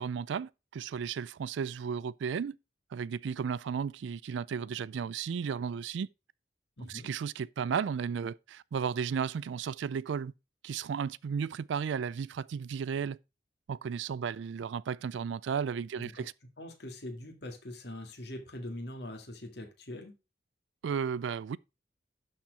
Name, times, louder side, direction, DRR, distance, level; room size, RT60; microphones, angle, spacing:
voice 1, 0.0-2.6 2.9-6.1 6.8-10.3 10.6-13.2 13.7-16.3 20.8-21.6, right 6 dB, 75° right, 0.3 m, -34 dB
voice 2, 6.8-7.1 16.0-16.2 16.6-20.2, left 1 dB, 60° left, 1.9 m, -42 dB
11.5 x 4.4 x 4.6 m
head